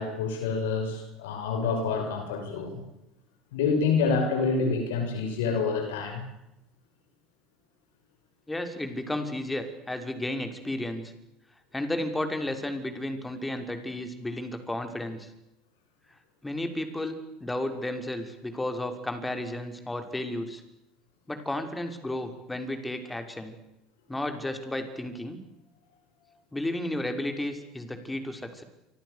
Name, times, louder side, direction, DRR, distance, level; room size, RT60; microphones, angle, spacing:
voice 1, 0.0-2.8 3.5-6.2, left 4 dB, 75° left, 6 dB, 5.7 m, -27 dB
voice 2, 8.5-11.1 11.7-15.3 16.4-17.1 17.4-20.6 21.3-23.5 24.1-25.4 26.5-28.6, left 1 dB, 10° left, 7 dB, 6.0 m, -33 dB
29.0 x 26.0 x 6.9 m, 0.90 s
hypercardioid pair, 70°, 0 cm